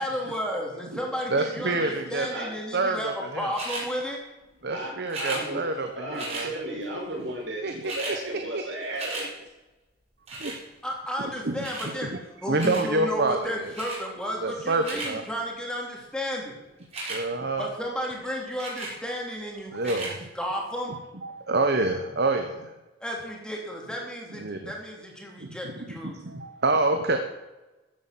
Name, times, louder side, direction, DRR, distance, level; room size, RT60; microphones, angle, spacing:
voice 1, 0.0-4.2 10.8-12.1 12.4-16.6 17.6-21.0 23.0-26.2, equal, 5° left, -1 dB, 3.2 m, -33 dB
voice 2, 1.3-2.3 2.7-3.5 4.6-6.5 7.6-7.7 10.4-10.6 11.4-11.6 12.5-13.7 14.4-15.2 17.1-17.7 19.7-20.2 21.2-22.7 24.4-24.7 25.4-27.2, right 2 dB, 60° right, 6 dB, 1.2 m, -27 dB
sound 1, 3.5-3.9 5.1-5.4 6.2-6.5 7.4-7.5 7.7-8.2 8.6-9.3 10.3-10.6 11.6-11.9 12.6-12.9 13.7-14.0 14.6-15.1 16.8-17.2 18.6-19.0 19.8-20.1 20.8-20.9, right 2 dB, 35° right, 5.2 m, -35 dB
voice 3, 4.7-9.2, right 1 dB, 85° right, -2 dB, 5.8 m, -35 dB
14.5 x 8.1 x 7.8 m, 1.1 s
head